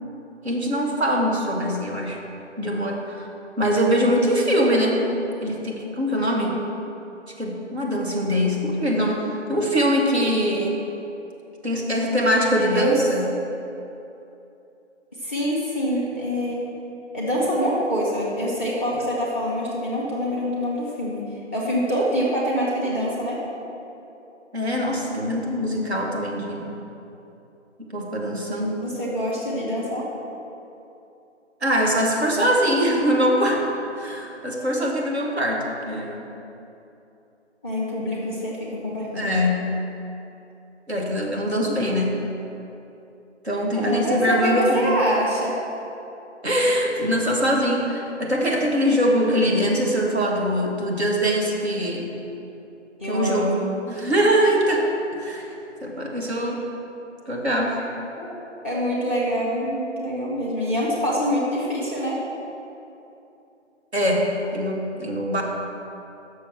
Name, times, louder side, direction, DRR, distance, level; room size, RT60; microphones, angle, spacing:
voice 1, 0.4-2.2 2.6-3.3 3.6-5.0 5.4-6.6 7.4-10.9 11.6-13.2 24.5-26.8 27.8-28.8 31.6-33.7 34.0-36.3 38.8-39.7 40.9-42.2 43.4-44.8 46.4-52.1 53.0-53.6 53.9-55.5 55.8-56.7 57.3-57.8 63.9-65.4, equal, 60° right, -1 dB, 1.7 m, -23 dB
voice 2, 12.6-13.0 15.2-16.7 17.1-21.3 21.5-23.4 28.8-30.0 37.6-39.4 43.7-45.6 53.0-53.6 58.2-62.2, equal, 10° right, -5 dB, 0.8 m, -25 dB
7.3 x 6.4 x 6.0 m, 2.9 s
figure-of-eight pair, 155°, 36 cm